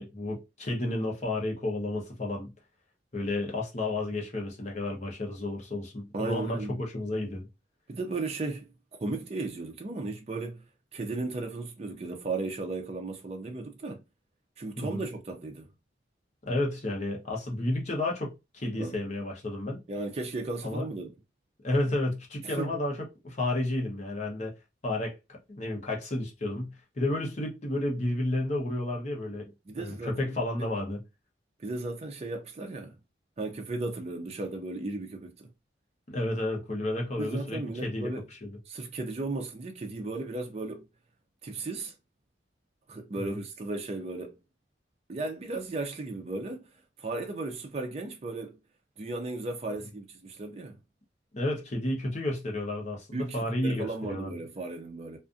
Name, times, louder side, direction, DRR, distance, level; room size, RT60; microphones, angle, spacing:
voice 1, 0.0-2.5 3.1-7.5 14.8-15.0 16.5-19.8 20.6-20.8 21.6-24.5 24.8-25.1 25.5-29.5 29.8-31.0 36.1-38.1 38.4-38.5 43.2-43.3 51.3-54.3, left 1 dB, 40° left, 0.8 m, -31 dB
voice 2, 6.1-6.8 7.9-8.7 9.0-10.6 10.9-14.0 14.6-15.7 18.6-19.0 19.9-21.2 22.4-22.8 29.7-30.3 31.6-32.9 33.4-35.5 37.2-38.2 38.7-40.9 41.4-41.9 42.9-44.3 45.1-46.7 47.0-48.6 49.0-50.8 53.1-55.2, right 3 dB, 35° right, 0.4 m, -35 dB
2.5 x 2.4 x 2.4 m
head